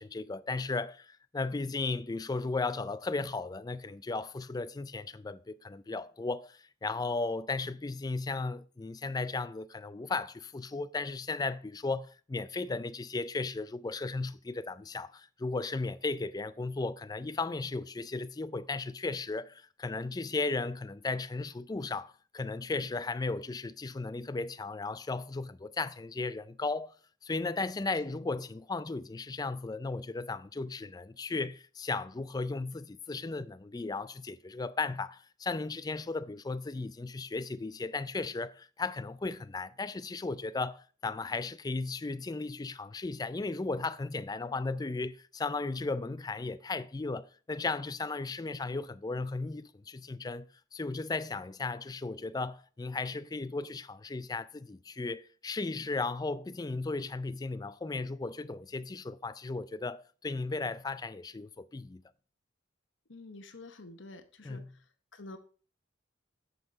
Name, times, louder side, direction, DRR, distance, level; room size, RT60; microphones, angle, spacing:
voice 1, 0.0-26.9 27.2-62.0 64.4-64.7, left 3 dB, 20° left, 0.4 m, -35 dB
voice 2, 63.1-64.8 65.1-65.4, left 2 dB, 70° left, 1.1 m, -48 dB
8.1 x 5.6 x 4.4 m
head